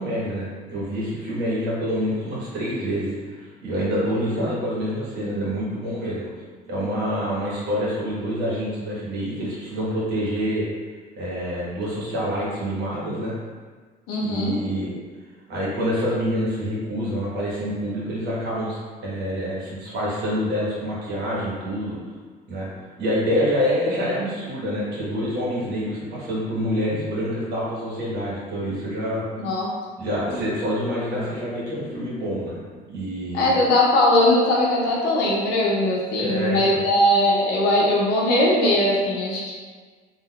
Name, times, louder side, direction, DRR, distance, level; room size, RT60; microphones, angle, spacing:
voice 1, 0.0-6.3 6.7-10.6 11.1-13.4 14.2-14.9 15.5-22.0 22.5-22.7 23.0-29.6 30.0-32.6 32.9-33.6 36.2-36.8, equal, 75° right, -7 dB, 1.2 m, -27 dB
voice 2, 14.1-14.5 29.4-29.7 33.3-39.5, left 1 dB, 90° left, -4 dB, 0.7 m, -20 dB
3.5 x 2.5 x 2.3 m, 1.5 s
cardioid pair, 110°, 17 cm